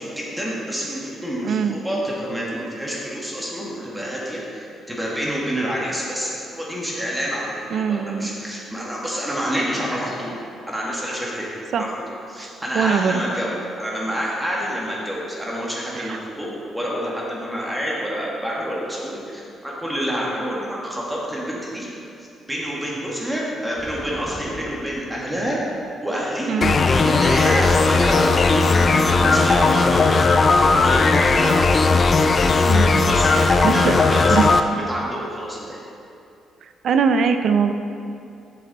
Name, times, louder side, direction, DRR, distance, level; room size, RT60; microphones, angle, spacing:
voice 1, 0.0-10.3 10.7-11.5 11.8-21.9 22.2-26.5 27.0-31.7 33.1-34.5 34.9-35.8, equal, 10° right, -4 dB, 1.8 m, -28 dB
voice 2, 1.4-1.8 7.7-8.3 11.7-11.9 12.4-12.5 12.7-13.2 15.9-16.2 26.5-26.8 32.7-34.0 34.3-34.4 36.8-37.7, right 6 dB, 65° right, 8 dB, 0.5 m, -22 dB
sound 1, 23.8-25.9, left 1 dB, 25° left, 1.1 m, -40 dB
sound 2, 26.6-34.6, left 3 dB, 40° left, 0.4 m, -17 dB
7.3 x 7.0 x 4.1 m, 2.6 s
cardioid pair, 80°, 0 cm